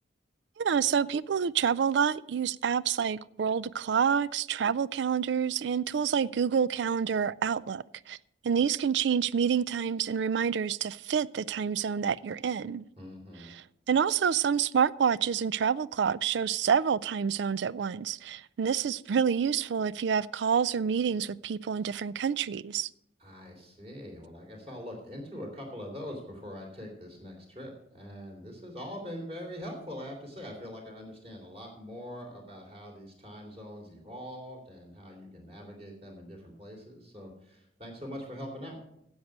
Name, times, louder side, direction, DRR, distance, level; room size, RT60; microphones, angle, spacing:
voice 1, 0.6-8.2 8.4-12.8 13.5-22.9, right 7 dB, 70° right, 0.4 m, -28 dB
voice 2, 13.0-13.5 23.2-38.8, equal, 30° right, 3.2 m, -43 dB
10.5 x 8.0 x 6.1 m
head